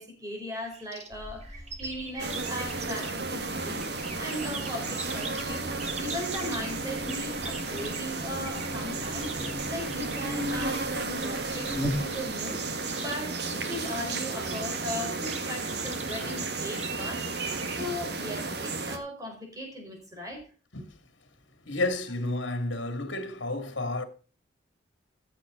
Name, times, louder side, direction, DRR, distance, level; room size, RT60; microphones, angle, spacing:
voice 1, 0.0-3.8 4.2-5.6 6.0-17.2 17.7-20.4, left 1 dB, 20° right, 4.4 m, -38 dB
sound 1, 0.6-3.3 3.8-17.8, right 4 dB, 35° right, 2.1 m, -43 dB
Buzz, 1.1-12.5, left 1 dB, 5° right, 2.2 m, -40 dB
sound 2, 2.2-19.0, right 3 dB, 55° right, 1.7 m, -33 dB
voice 2, 21.7-24.0, left 2 dB, 70° left, 2.3 m, -31 dB
15.0 x 7.6 x 3.9 m
head